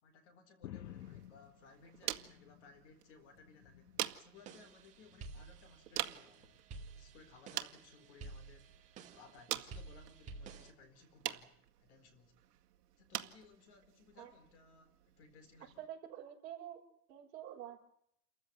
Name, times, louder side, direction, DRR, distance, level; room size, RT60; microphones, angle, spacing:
voice 1, 0.0-6.6 6.9-8.7 9.1-12.3 13.0-15.8, left 4 dB, 45° left, 11 dB, 4.2 m, -61 dB
sound 1, 0.6-2.9 3.2-4.2 5.0-5.4 6.4-6.6, left 12 dB, 80° left, 1.3 m, -53 dB
sound 2, 0.8-15.9, right 12 dB, 70° right, 2.0 m, -47 dB
sound 3, 4.4-10.7, right 4 dB, 15° right, 1.9 m, -52 dB
voice 2, 15.8-16.8 17.1-17.9, right 11 dB, 40° right, 0 dB, 6.5 m, -48 dB
29.0 x 15.0 x 9.3 m, 0.72 s
supercardioid pair, 180°, 49 cm